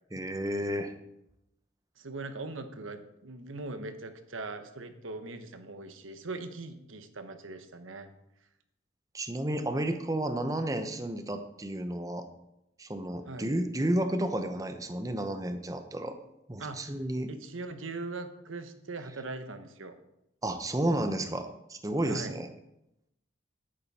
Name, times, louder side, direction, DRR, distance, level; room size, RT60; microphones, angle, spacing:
voice 1, 0.1-0.9 9.1-12.3 12.8-16.1 16.5-17.3 20.4-22.5, right 1 dB, 15° right, 7 dB, 0.8 m, -31 dB
voice 2, 2.0-8.1 13.3-13.5 16.6-16.8 17.3-20.0 22.0-22.4, right 3 dB, 85° right, 8 dB, 1.1 m, -40 dB
10.5 x 9.2 x 4.2 m, 0.84 s
head